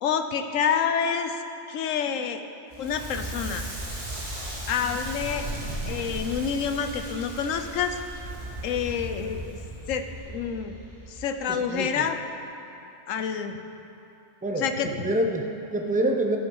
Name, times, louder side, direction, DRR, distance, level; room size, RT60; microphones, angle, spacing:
voice 1, 0.0-1.4 1.7-2.4 2.8-3.7 4.7-5.5 5.8-8.0 8.6-9.4 9.9-10.8 11.1-12.2 13.1-13.6 14.6-14.9, left 7 dB, 80° left, 8 dB, 1.0 m, -28 dB
Crackle, 2.7-11.7, right 1 dB, 30° right, 2.3 m, -36 dB
voice 2, 11.5-12.1 14.4-16.4, right 1 dB, 10° right, 3 dB, 0.5 m, -27 dB
15.5 x 6.2 x 5.4 m, 2.9 s
omnidirectional pair, 1.3 m